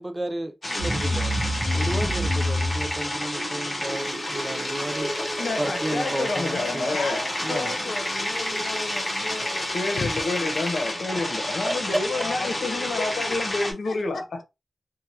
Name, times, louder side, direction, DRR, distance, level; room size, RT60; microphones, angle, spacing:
voice 1, 0.0-1.4 1.7-5.1 5.6-6.9 7.4-7.7 11.9-12.0, right 1 dB, 15° right, 0.3 m, -32 dB
sound 1, 0.6-13.7, left 1 dB, 25° left, 0.9 m, -30 dB
sound 2, 0.8-13.5, equal, 40° right, 1.0 m, -32 dB
voice 2, 5.4-7.2 9.7-14.4, left 3 dB, 60° left, 0.8 m, -29 dB
voice 3, 6.5-10.1 11.4-11.6 11.9-14.4, left 4 dB, 90° left, 0.6 m, -36 dB
3.2 x 2.2 x 2.8 m
wide cardioid pair, 160°, 0 cm